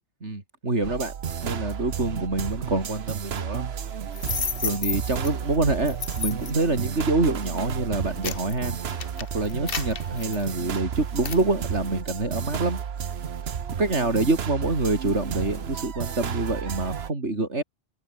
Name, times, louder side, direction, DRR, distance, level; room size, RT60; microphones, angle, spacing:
voice 1, 0.2-1.1 1.4-3.7 4.1-4.2 4.6-9.0 9.3-12.8 13.8-17.6, right 2 dB, 85° right, 4.4 m, -26 dB
sound 1, 0.8-17.1, right 7 dB, 65° right, 1.2 m, -32 dB
sound 2, 4.1-5.3 5.9-6.6 7.3-7.5 7.9-10.8 11.2-11.5, left 5 dB, 55° left, 1.7 m, -32 dB
omnidirectional pair, 1.2 m